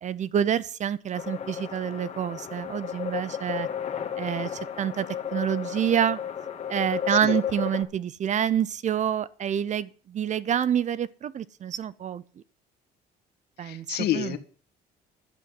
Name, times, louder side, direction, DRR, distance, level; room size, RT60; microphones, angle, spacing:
voice 1, 0.0-3.7 4.2-4.5 4.8-5.1 5.3-6.2 6.7-12.2 13.6-14.4, right 9 dB, 45° right, 0.8 m, -27 dB
sound 1, 1.1-7.8, left 8 dB, 40° left, 2.0 m, -33 dB
voice 2, 13.6-14.4, left 12 dB, 75° left, 1.8 m, -29 dB
11.5 x 7.5 x 8.2 m
cardioid pair, 110°, 17 cm